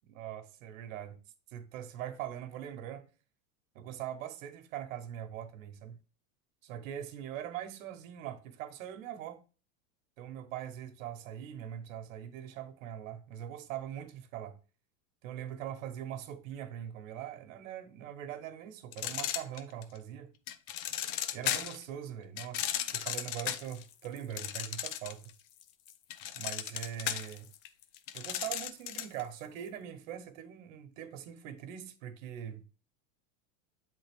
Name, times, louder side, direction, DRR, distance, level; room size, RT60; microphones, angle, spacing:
voice 1, 0.1-1.2 1.5-3.1 3.7-6.0 6.6-9.4 10.2-14.6 15.2-20.3 21.3-25.2 26.3-27.5 28.1-32.6, right 10 dB, 70° right, 1.1 m, -42 dB
sound 1, 18.9-20.0 20.5-21.8 22.4-25.3 25.6-29.2, left 11 dB, 45° left, 0.5 m, -36 dB
8.3 x 3.9 x 3.4 m
supercardioid pair, 165°, 41 cm